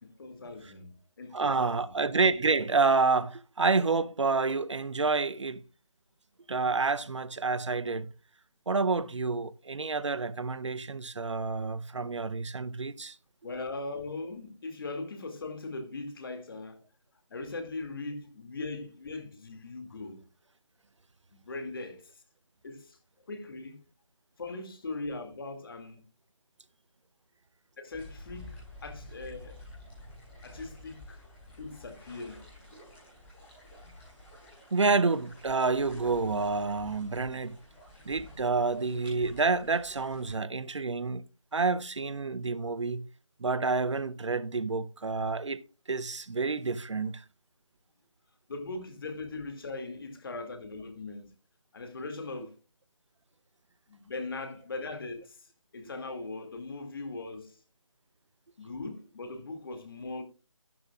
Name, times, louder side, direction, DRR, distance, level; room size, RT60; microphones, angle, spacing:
voice 1, 0.0-2.0 13.4-16.8 17.3-20.2 21.3-22.2 22.6-23.0 23.3-23.8 24.4-26.1 27.8-29.6 30.4-31.2 31.6-32.5 48.5-51.3 51.7-52.6 53.9-55.5 55.7-57.6 58.6-60.2, left 3 dB, 45° left, 2.3 m, -40 dB
voice 2, 1.3-5.6 6.5-8.1 8.7-13.2 34.7-37.6 38.1-41.2 41.5-43.1 43.4-45.6 45.9-47.2, right 4 dB, 65° right, 0.7 m, -28 dB
sound 1, 27.9-40.3, left 1 dB, 10° left, 6.2 m, -50 dB
12.0 x 11.5 x 2.4 m
figure-of-eight pair, 160°, 16 cm